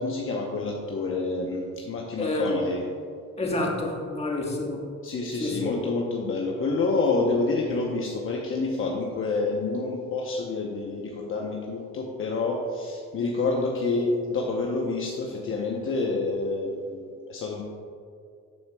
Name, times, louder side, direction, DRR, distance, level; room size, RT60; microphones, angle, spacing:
voice 1, 0.0-2.8 5.0-17.6, left 3 dB, 45° left, 0 dB, 0.8 m, -28 dB
voice 2, 2.2-2.7 3.4-4.8 5.4-5.7, left 1 dB, 20° left, -2 dB, 1.5 m, -28 dB
11.5 x 6.3 x 2.3 m, 2.4 s
cardioid pair, 105°, 29 cm